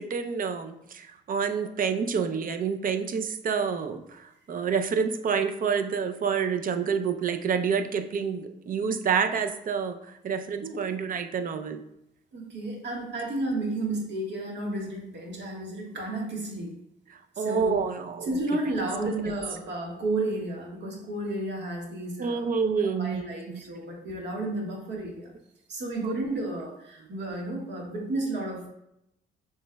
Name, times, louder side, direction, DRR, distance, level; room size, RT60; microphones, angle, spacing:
voice 1, 0.0-11.8 17.4-18.4 22.2-23.6 26.0-26.1, right 6 dB, 45° right, 8 dB, 0.5 m, -28 dB
voice 2, 12.3-16.7 17.3-17.8 18.2-22.4 22.8-25.3 25.7-28.7, right 2 dB, 60° right, -1 dB, 1.5 m, -32 dB
7.0 x 3.3 x 2.2 m, 0.81 s
cardioid pair, 90°, 20 cm